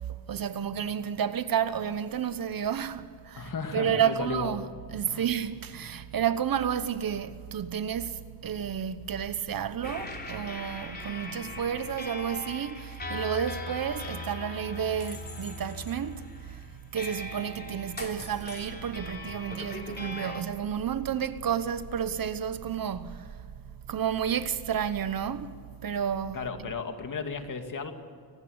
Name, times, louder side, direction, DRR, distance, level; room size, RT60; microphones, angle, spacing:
voice 1, 0.1-16.6 16.9-23.4 23.9-26.7, right 8 dB, 50° right, 1.1 m, -31 dB
voice 2, 3.4-4.5 5.1-5.2 26.3-27.9, left 5 dB, 45° left, 2.5 m, -34 dB
sound 1, 9.8-20.4, left 2 dB, 20° left, 3.3 m, -40 dB
24.5 x 19.0 x 8.0 m
cardioid pair, 115°, 44 cm